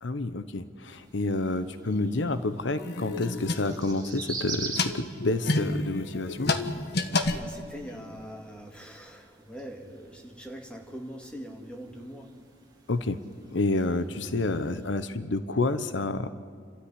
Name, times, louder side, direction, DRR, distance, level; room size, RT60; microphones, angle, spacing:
voice 1, 0.0-6.5 12.9-13.2 13.5-16.3, left 2 dB, 75° left, 13 dB, 0.9 m, -29 dB
sound 1, 0.9-15.2, right 4 dB, 20° right, 2.6 m, -46 dB
sound 2, 2.8-4.2 4.6-8.0, left 2 dB, 55° left, 1.4 m, -30 dB
voice 2, 7.4-12.3, equal, 5° left, 1 dB, 2.4 m, -42 dB
29.5 x 13.5 x 9.9 m, 2.2 s
head